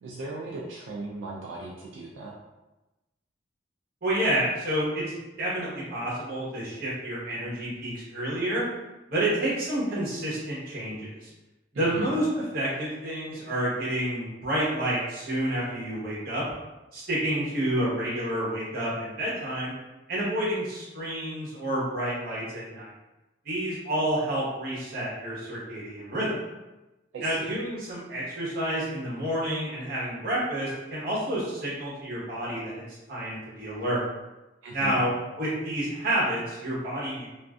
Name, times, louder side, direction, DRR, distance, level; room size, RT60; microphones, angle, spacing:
voice 1, 0.0-2.3 11.7-12.1 27.1-27.5 34.6-35.0, right 2 dB, 85° right, -3 dB, 0.4 m, -37 dB
voice 2, 4.0-8.7 9.1-11.3 11.7-16.4 16.9-19.7 20.1-22.9 23.4-26.3 27.2-32.7 33.1-34.1 34.7-37.3, right 1 dB, 55° right, -7 dB, 0.9 m, -29 dB
2.5 x 2.4 x 2.3 m, 1.0 s
head